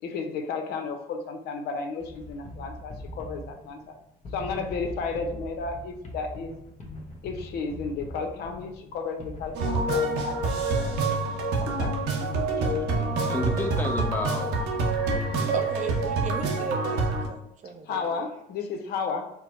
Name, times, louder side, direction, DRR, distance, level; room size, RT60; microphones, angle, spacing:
voice 1, 0.0-3.9 4.3-6.6 7.2-11.2 11.6-11.9 12.2-13.1 17.9-19.3, left 4 dB, 75° left, 5 dB, 0.7 m, -33 dB
sound 1, 2.0-11.6, left 1 dB, 45° left, 1.1 m, -41 dB
sound 2, 9.5-17.3, right 2 dB, 80° right, 0.9 m, -26 dB
voice 2, 13.3-15.4, left 1 dB, 10° left, 4 dB, 0.6 m, -33 dB
voice 3, 15.5-18.2, right 4 dB, 45° right, 6 dB, 0.6 m, -35 dB
4.5 x 2.0 x 4.4 m, 0.83 s
cardioid pair, 110°, 17 cm